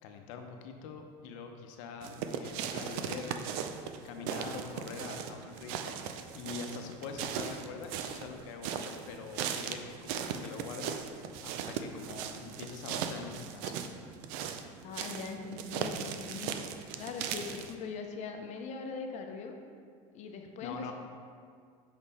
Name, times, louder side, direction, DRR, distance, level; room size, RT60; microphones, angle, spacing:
voice 1, 0.0-3.7 4.0-6.0 6.3-13.8 20.6-20.9, left 5 dB, 75° left, 4 dB, 0.8 m, -44 dB
sound 1, 2.0-17.7, right 7 dB, 65° right, 0.5 m, -38 dB
voice 2, 14.8-16.6 16.9-19.6 20.1-20.9, left 4 dB, 45° left, 4 dB, 0.8 m, -41 dB
5.5 x 5.0 x 4.1 m, 2.1 s
supercardioid pair, 125°, 17 cm